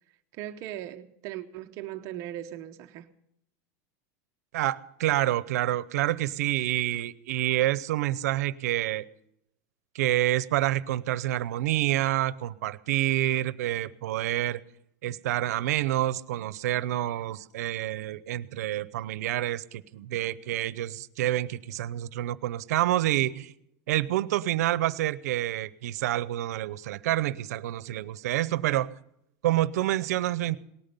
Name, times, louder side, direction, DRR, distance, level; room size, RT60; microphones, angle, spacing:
voice 1, 0.3-3.1, right 12 dB, 40° right, 0.8 m, -38 dB
voice 2, 4.5-9.0 9.9-14.6 15.0-23.5 23.9-29.0 29.4-30.6, right 14 dB, 90° right, 0.8 m, -28 dB
18.5 x 13.0 x 5.4 m
supercardioid pair, 170°, 8 cm